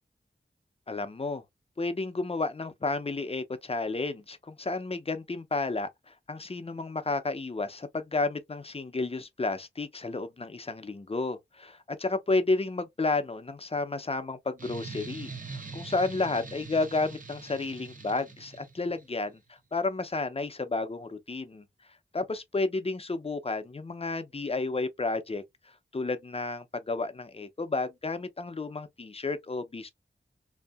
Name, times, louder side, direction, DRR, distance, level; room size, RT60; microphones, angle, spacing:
voice 1, 0.9-1.4 1.8-19.4 19.7-21.6 22.1-25.4 25.9-29.9, left 3 dB, 30° left, 0.5 m, -31 dB
sound 1, 14.6-19.0, right 4 dB, 45° right, 0.7 m, -43 dB
2.7 x 2.5 x 2.3 m
wide cardioid pair, 70°, 20 cm